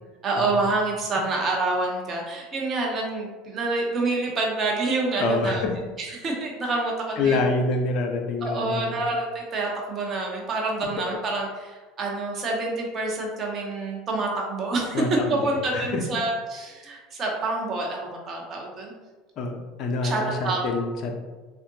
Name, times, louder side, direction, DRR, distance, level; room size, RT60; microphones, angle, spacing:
voice 1, 0.2-5.6 6.0-7.4 8.4-15.0 15.3-18.9 20.0-20.6, right 2 dB, 40° right, -1 dB, 0.8 m, -27 dB
voice 2, 5.2-5.7 7.2-9.0 14.9-16.0 19.4-21.2, left 3 dB, 50° left, 3 dB, 0.5 m, -26 dB
3.5 x 2.4 x 2.6 m, 1.3 s
hypercardioid pair, 75°, 0 cm